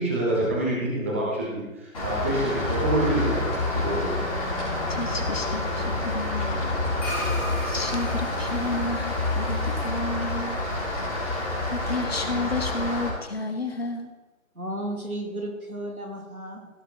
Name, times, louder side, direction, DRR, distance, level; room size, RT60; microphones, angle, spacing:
voice 1, 0.0-3.4 3.7-4.2, right 1 dB, 10° right, -5 dB, 1.1 m, -26 dB
Rain, 1.9-13.1, left 2 dB, 25° left, 4.4 m, -28 dB
voice 2, 4.9-6.4 7.7-10.6 11.0-11.1 11.7-14.1, left 3 dB, 45° left, 7 dB, 1.3 m, -31 dB
sound 1, 7.0-11.6, equal, 10° left, 1.2 m, -38 dB
voice 3, 14.6-16.7, right 1 dB, 90° right, 2 dB, 2.8 m, -34 dB
16.5 x 6.1 x 4.7 m, 1.1 s
figure-of-eight pair, 155°, 42 cm